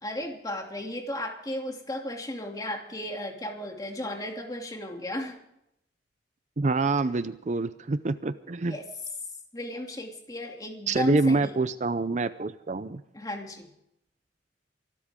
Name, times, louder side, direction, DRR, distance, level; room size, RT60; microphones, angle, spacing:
voice 1, 0.0-5.4 8.7-8.8 9.5-11.6 13.1-13.7, left 1 dB, 20° left, 2 dB, 2.8 m, -35 dB
voice 2, 6.6-8.8 10.9-13.0, right 3 dB, 40° right, 13 dB, 0.6 m, -26 dB
24.5 x 13.0 x 3.7 m, 0.78 s
head